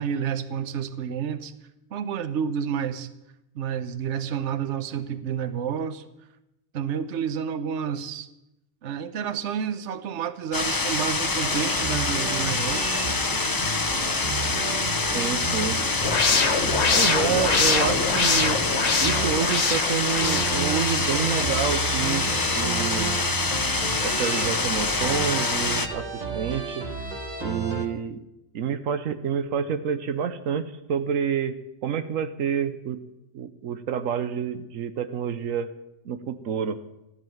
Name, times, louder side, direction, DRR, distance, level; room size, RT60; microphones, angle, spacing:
voice 1, 0.0-1.5 1.9-3.1 3.5-6.0 6.7-8.3 8.8-13.0, right 7 dB, 65° right, 12 dB, 1.1 m, -30 dB
sound 1, 10.5-25.9, left 3 dB, 25° left, 0.5 m, -26 dB
sound 2, 11.4-27.8, right 4 dB, 30° right, 1.7 m, -33 dB
voice 2, 15.1-15.8 16.9-18.6 19.0-23.1 24.0-26.8 27.4-28.2 28.5-31.6 31.8-33.0 33.3-35.7 36.0-36.8, right 7 dB, 80° right, 10 dB, 1.2 m, -28 dB
sound 3, 16.0-21.2, left 4 dB, 60° left, 1.6 m, -24 dB
14.5 x 11.0 x 7.2 m, 0.90 s
omnidirectional pair, 1.3 m